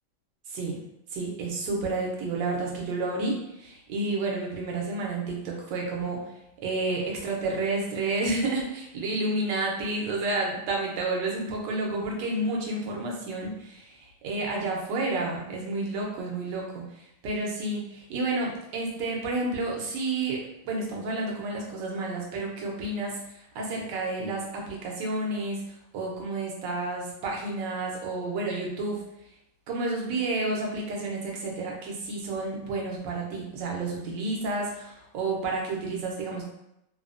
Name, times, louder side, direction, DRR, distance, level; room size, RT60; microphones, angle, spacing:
voice 1, 1.1-6.2 6.6-23.1 23.5-29.0 29.7-36.5, right 2 dB, 85° right, -1 dB, 1.4 m, -30 dB
3.3 x 2.0 x 2.5 m, 0.82 s
omnidirectional pair, 1.9 m